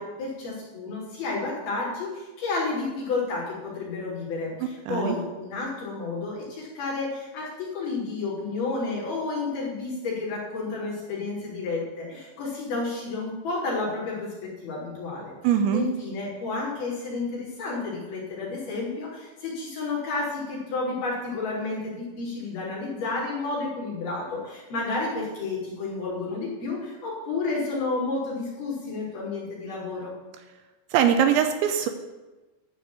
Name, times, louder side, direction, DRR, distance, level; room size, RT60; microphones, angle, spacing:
voice 1, 0.0-15.3 15.7-30.1, left 3 dB, 55° left, -7 dB, 5.0 m, -31 dB
voice 2, 4.9-5.2 15.4-15.9 30.9-31.9, right 9 dB, 85° right, 7 dB, 2.8 m, -21 dB
12.0 x 5.1 x 7.7 m, 1.2 s
omnidirectional pair, 5.5 m